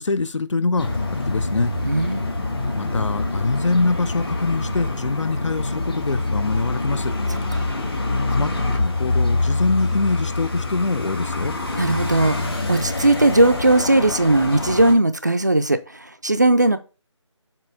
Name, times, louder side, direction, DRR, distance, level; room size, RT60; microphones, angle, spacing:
voice 1, 0.0-1.7 2.8-7.1 7.7-7.8 8.3-11.6, left 3 dB, 75° left, 0.7 m, -24 dB
sound 1, 0.8-14.9, left 2 dB, 50° left, 1.9 m, -25 dB
voice 2, 1.8-2.3 7.6-7.7 11.8-16.8, right 2 dB, 35° right, 0.4 m, -18 dB
7.5 x 2.9 x 4.6 m
figure-of-eight pair, 175°, 16 cm